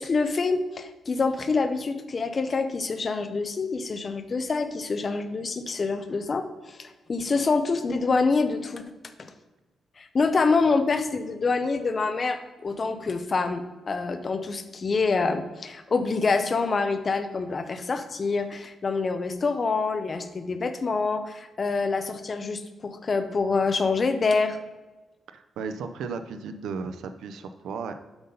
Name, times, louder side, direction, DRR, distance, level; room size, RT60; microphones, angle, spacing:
voice 1, 0.0-8.8 9.2-9.3 10.0-24.6, left 4 dB, 30° left, 9 dB, 0.6 m, -26 dB
voice 2, 25.3-27.9, right 5 dB, 85° right, 9 dB, 0.5 m, -35 dB
7.9 x 3.9 x 5.3 m, 1.2 s
wide cardioid pair, 160°, 0 cm